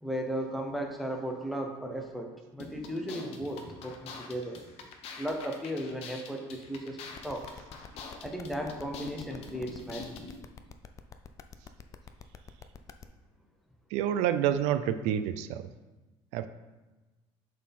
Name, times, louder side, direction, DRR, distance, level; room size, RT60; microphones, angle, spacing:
voice 1, 0.0-4.6 5.2-7.5 8.2-10.2, equal, ahead, 2 dB, 0.9 m, -36 dB
sound 1, 2.6-10.4, left 4 dB, 60° left, 0.9 m, -45 dB
sound 2, 7.1-13.0, left 7 dB, 30° left, 0.4 m, -47 dB
voice 2, 13.9-15.7 16.3-16.5, right 10 dB, 80° right, 11 dB, 0.4 m, -28 dB
7.2 x 4.2 x 4.2 m, 1.2 s
cardioid pair, 125°, 12 cm